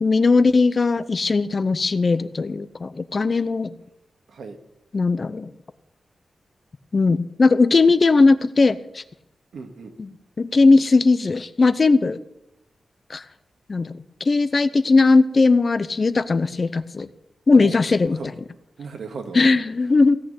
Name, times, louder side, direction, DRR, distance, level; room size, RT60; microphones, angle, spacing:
voice 1, 0.0-3.7 4.9-5.5 6.9-9.0 10.0-10.1 10.4-12.2 13.1-13.2 13.7-13.9 14.2-17.1 17.5-18.2 19.3-20.2, left 3 dB, 40° left, 14 dB, 0.7 m, -18 dB
voice 2, 9.5-10.0 17.5-18.3 18.8-19.4, right 4 dB, 80° right, 5 dB, 2.1 m, -36 dB
16.5 x 6.3 x 9.3 m, 0.83 s
wide cardioid pair, 130°, 0 cm